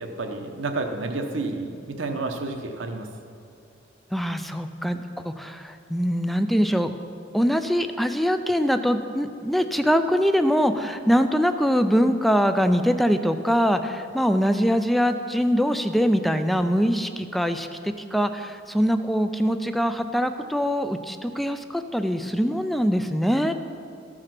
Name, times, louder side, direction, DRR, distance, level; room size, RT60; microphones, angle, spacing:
voice 1, 0.0-3.1, right 3 dB, 75° right, 5 dB, 0.9 m, -30 dB
voice 2, 4.1-6.9 7.3-23.5, equal, ahead, 8 dB, 0.3 m, -23 dB
14.0 x 4.9 x 5.8 m, 2.5 s
head